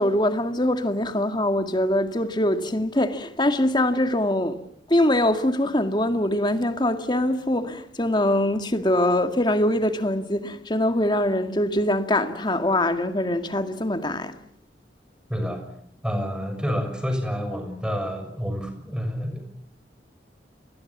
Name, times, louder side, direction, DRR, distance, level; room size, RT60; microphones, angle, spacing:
voice 1, 0.0-4.6 4.9-14.3, left 1 dB, 25° left, 2.0 m, -23 dB
voice 2, 15.3-15.6 16.0-19.4, equal, 5° right, 6.4 m, -28 dB
30.0 x 21.5 x 7.3 m
head